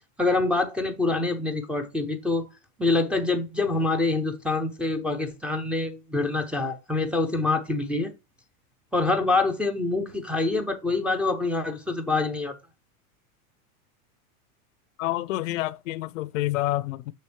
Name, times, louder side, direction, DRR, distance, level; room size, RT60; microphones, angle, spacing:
voice 1, 0.2-2.5 2.8-8.1 8.9-12.5, left 3 dB, 5° right, 0.6 m, -25 dB
voice 2, 15.0-17.1, left 16 dB, 65° left, 0.6 m, -28 dB
6.5 x 6.1 x 3.1 m
supercardioid pair, 140°, 43 cm